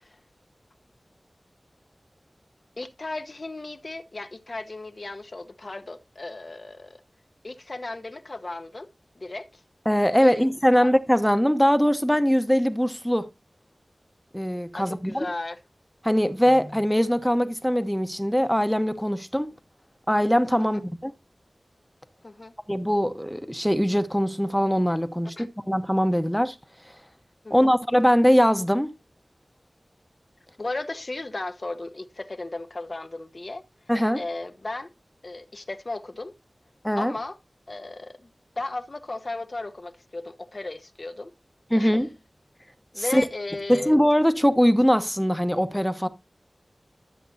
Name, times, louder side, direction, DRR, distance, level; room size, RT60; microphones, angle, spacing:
voice 1, 2.8-7.0 7.4-8.9 9.2-9.5 10.2-10.5 10.7-10.9 14.7-15.6 20.7-20.8 22.2-22.5 25.4-25.5 27.4-27.7 30.6-33.6 34.1-34.9 35.2-36.3 37.0-37.4 37.7-38.3 38.6-41.3 41.7-41.9 42.9-44.0, left 2 dB, 55° left, 1.0 m, -35 dB
voice 2, 9.8-13.3 14.3-15.3 16.0-19.5 20.1-21.1 22.7-26.6 26.8-26.9 27.5-28.9 33.9-34.2 36.8-37.1 41.7-42.1 43.0-43.2 43.7-46.1, equal, 5° left, 1.0 m, -22 dB
12.5 x 7.7 x 2.8 m
wide cardioid pair, 60°, 0 cm